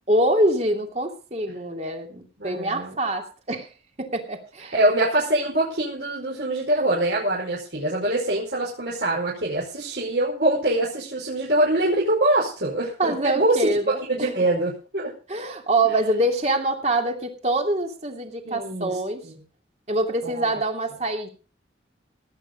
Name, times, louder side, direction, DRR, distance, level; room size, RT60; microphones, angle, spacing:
voice 1, 0.1-3.7 4.0-4.7 13.0-14.3 15.3-19.3 19.9-21.3, right 1 dB, 35° right, 3 dB, 2.7 m, -25 dB
voice 2, 2.4-2.9 4.7-13.7 14.1-15.1 18.4-18.9 19.2-19.3 20.2-20.6, right 1 dB, 60° right, -5 dB, 5.0 m, -24 dB
18.0 x 9.3 x 5.2 m, 0.35 s
head